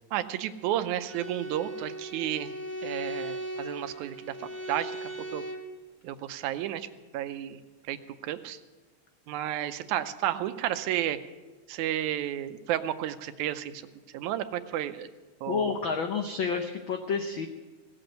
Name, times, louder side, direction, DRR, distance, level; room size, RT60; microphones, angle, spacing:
voice 1, 0.1-2.5 2.8-4.3 4.7-5.4 6.0-6.9 7.1-7.6 7.9-8.0 8.2-8.6 9.3-11.2 11.7-13.9 14.1-15.1 15.4-15.7, right 12 dB, 85° right, 11 dB, 2.1 m, -32 dB
Bowed string instrument, 1.1-5.7, right 1 dB, 5° left, 1.4 m, -38 dB
voice 2, 15.5-17.5, left 5 dB, 90° left, 5 dB, 1.0 m, -29 dB
17.5 x 7.8 x 7.8 m, 1.2 s
omnidirectional pair, 3.4 m